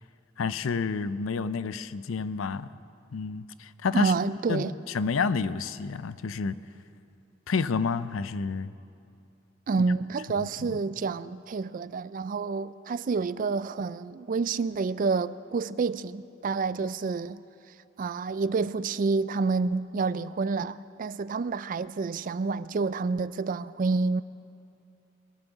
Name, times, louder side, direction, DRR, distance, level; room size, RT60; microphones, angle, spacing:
voice 1, 0.4-2.7 3.1-4.1 4.5-4.7 4.9-6.6 7.5-8.7 10.4-10.8, left 4 dB, 85° left, 0.5 m, -29 dB
voice 2, 3.9-4.7 9.7-17.4 18.0-24.2, right 4 dB, 45° right, 0.3 m, -28 dB
22.5 x 12.0 x 4.0 m
head